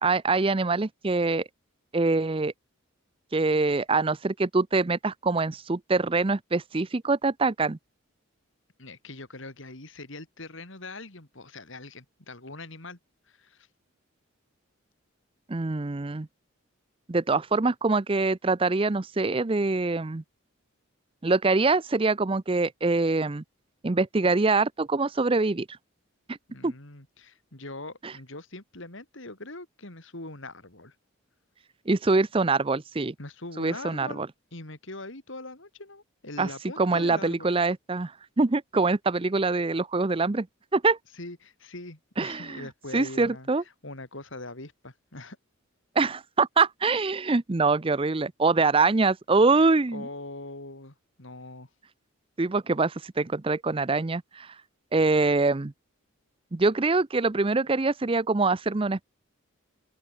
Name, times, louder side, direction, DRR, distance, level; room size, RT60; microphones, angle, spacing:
voice 1, 0.0-1.4 1.9-2.5 3.3-7.8 15.5-16.3 17.1-20.2 21.2-23.4 23.8-25.7 26.6-26.7 28.0-28.1 31.9-33.1 33.6-34.3 36.4-36.5 36.8-40.5 40.7-41.0 42.2-42.6 42.9-43.6 46.0-50.1 52.4-54.5 54.9-55.7 56.5-59.0, right 3 dB, 25° right, 0.5 m, -24 dB
voice 2, 8.8-13.0 13.3-13.7 26.5-30.9 33.2-37.5 41.2-43.5 43.8-45.4 49.9-51.7, left 2 dB, 60° left, 3.4 m, -42 dB
open air
head